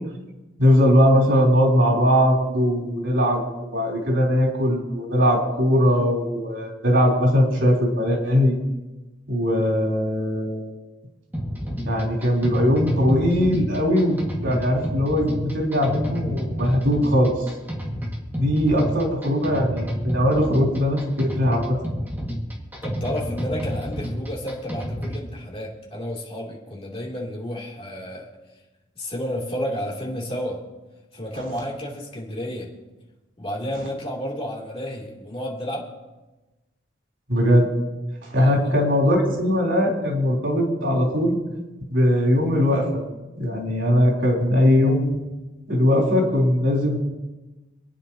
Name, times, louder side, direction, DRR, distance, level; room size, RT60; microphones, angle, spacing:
voice 1, 0.6-8.6 9.3-10.7 11.9-17.3 18.3-21.8 37.3-37.7 38.2-41.4 41.9-42.9 43.4-45.2 45.7-47.0, equal, 85° right, -2 dB, 3.6 m, -20 dB
sound 1, 11.3-25.3, equal, 10° right, 1.9 m, -30 dB
voice 2, 22.8-28.3 29.0-30.6 31.1-32.7 33.4-35.9 38.4-38.7, equal, 30° left, -3 dB, 2.9 m, -31 dB
27.0 x 9.7 x 2.9 m, 1.1 s
head